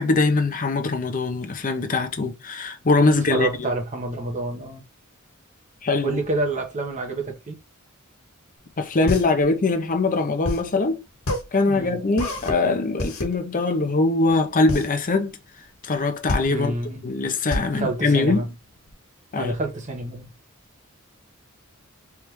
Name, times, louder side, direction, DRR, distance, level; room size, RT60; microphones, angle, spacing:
voice 1, 0.0-3.7 5.8-6.2 8.8-11.0 11.5-15.4 15.8-16.7 17.0-18.5 19.3-19.5, left 3 dB, 40° left, 0.7 m, -22 dB
voice 2, 3.1-4.8 6.0-7.6 11.7-12.0 16.5-17.1 17.7-18.5 19.4-20.3, right 2 dB, 35° right, 1.0 m, -28 dB
sound 1, 8.6-18.9, left 1 dB, 85° left, 1.4 m, -30 dB
3.5 x 3.3 x 3.0 m
head